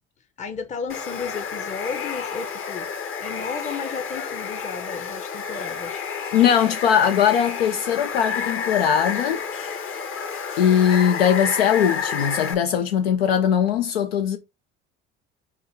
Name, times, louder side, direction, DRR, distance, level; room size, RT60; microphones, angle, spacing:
voice 1, 0.4-2.9 3.2-6.1, left 5 dB, 25° left, 0.7 m, -33 dB
Water, 0.9-12.5, left 6 dB, 45° left, 1.0 m, -30 dB
voice 2, 6.3-9.4 10.6-14.4, left 8 dB, 85° left, 0.5 m, -20 dB
4.6 x 2.4 x 4.5 m
hypercardioid pair, 60°, 29 cm